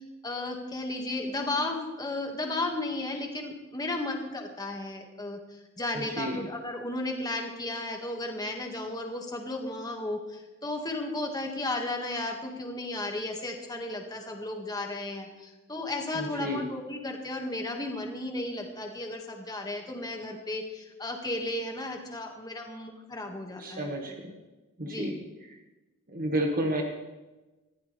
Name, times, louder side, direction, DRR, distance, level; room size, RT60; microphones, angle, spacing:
voice 1, 0.2-24.2 24.9-25.1, left 2 dB, 20° left, 3 dB, 1.9 m, -34 dB
voice 2, 5.9-6.4 16.1-16.6 23.6-24.4 24.8-25.2 26.1-26.8, right 1 dB, 40° right, 1 dB, 1.6 m, -31 dB
20.0 x 15.0 x 3.4 m, 1.1 s
head